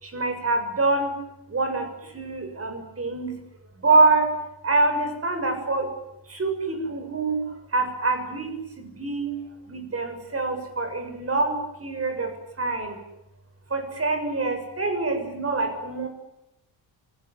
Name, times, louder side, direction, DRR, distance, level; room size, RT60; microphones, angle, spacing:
voice 1, 0.0-1.1 1.5-1.9 2.1-3.3 3.8-4.4 4.6-6.0 6.3-7.4 7.7-9.4 9.7-12.3 12.6-13.0 13.7-16.1, right 3 dB, 30° right, 6 dB, 6.9 m, -25 dB
28.5 x 20.5 x 9.9 m, 0.91 s
cardioid pair, 135°, 44 cm